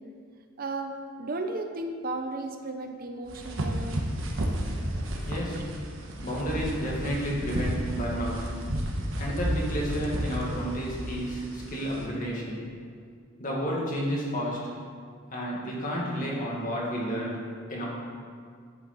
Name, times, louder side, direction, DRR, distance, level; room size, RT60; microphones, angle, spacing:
voice 1, 0.6-4.0 5.5-5.6, right 2 dB, 45° right, 5 dB, 0.6 m, -34 dB
sound 1, 3.3-12.1, right 1 dB, 70° right, 1.2 m, -32 dB
voice 2, 4.7-8.7 9.2-12.9 13.3-14.7 15.3-17.4 17.7-17.9, equal, 40° left, -4 dB, 2.1 m, -31 dB
11.0 x 8.4 x 4.1 m, 2.1 s
head